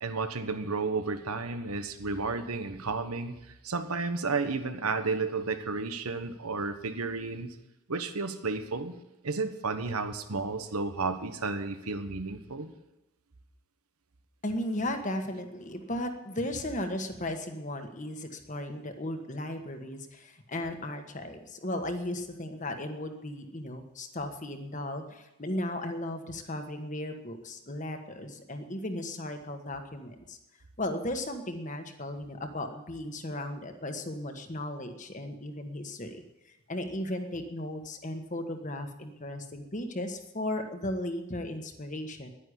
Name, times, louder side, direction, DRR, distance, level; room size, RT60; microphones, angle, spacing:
voice 1, 0.0-3.4 3.6-7.5 7.9-8.9 9.2-12.7, right 4 dB, 90° right, 9 dB, 1.3 m, -32 dB
voice 2, 14.4-30.4 30.8-42.3, left 1 dB, 35° left, 6 dB, 1.5 m, -36 dB
11.0 x 10.0 x 9.9 m, 0.92 s
head